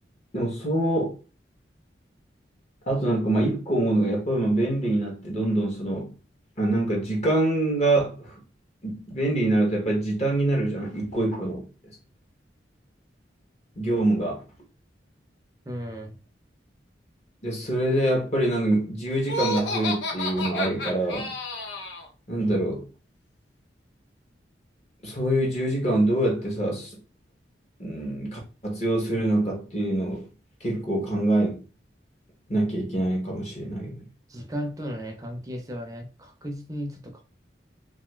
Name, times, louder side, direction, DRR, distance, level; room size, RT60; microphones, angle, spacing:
voice 1, 0.3-1.1 2.9-6.1 6.6-8.3 8.8-11.7 13.8-14.4 17.4-21.3 22.3-22.9 25.0-26.9 27.8-30.2 30.6-31.6 32.5-34.0, right 1 dB, 35° left, 0.8 m, -25 dB
voice 2, 15.7-16.1 34.3-37.2, equal, 20° right, 0.5 m, -35 dB
Laughter, 19.2-22.1, left 1 dB, 80° left, 0.6 m, -30 dB
2.6 x 2.3 x 3.0 m
head